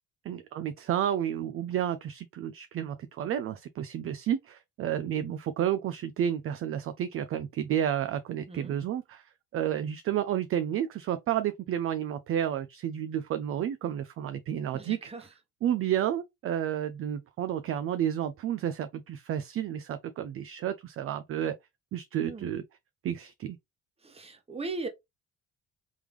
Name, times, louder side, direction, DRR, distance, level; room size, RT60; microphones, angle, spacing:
voice 1, 0.2-15.0 15.6-21.5 21.9-22.6 23.0-23.6, right 10 dB, 45° right, 0.4 m, -31 dB
voice 2, 8.5-8.8 14.7-15.3 22.2-22.5 24.0-24.9, right 3 dB, 20° right, 1.1 m, -38 dB
3.6 x 3.3 x 3.1 m
cardioid pair, 100°, 32 cm